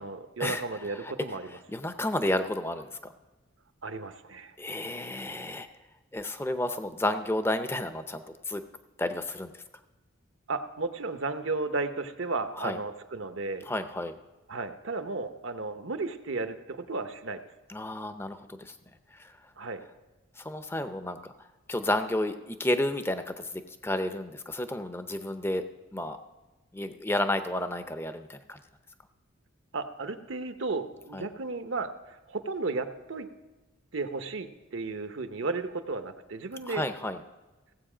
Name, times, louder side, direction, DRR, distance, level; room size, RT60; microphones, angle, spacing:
voice 1, 0.0-1.6 3.8-4.5 10.5-13.7 14.5-17.4 19.6-19.8 29.7-33.3 33.9-36.9, right 3 dB, 70° right, 8 dB, 0.8 m, -34 dB
voice 2, 1.7-3.0 4.6-5.7 6.1-8.6 9.0-9.5 12.6-12.8 13.7-14.1 17.7-18.7 19.2-19.3 20.4-21.2 21.7-25.6 25.9-26.2 26.7-28.6 31.1-31.3 36.7-37.2, left 1 dB, 10° left, 9 dB, 0.6 m, -31 dB
17.0 x 8.0 x 5.0 m, 1.2 s
head